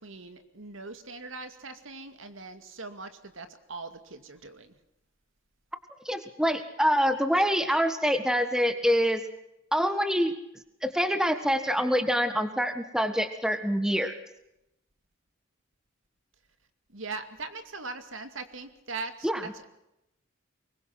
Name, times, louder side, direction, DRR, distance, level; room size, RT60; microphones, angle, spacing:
voice 1, 0.0-4.7 16.9-19.7, right 3 dB, 75° right, 9 dB, 2.4 m, -41 dB
voice 2, 6.0-9.2 9.7-10.3 10.8-14.1 19.2-19.4, equal, 5° right, 9 dB, 1.5 m, -25 dB
24.0 x 21.5 x 6.0 m, 0.85 s
head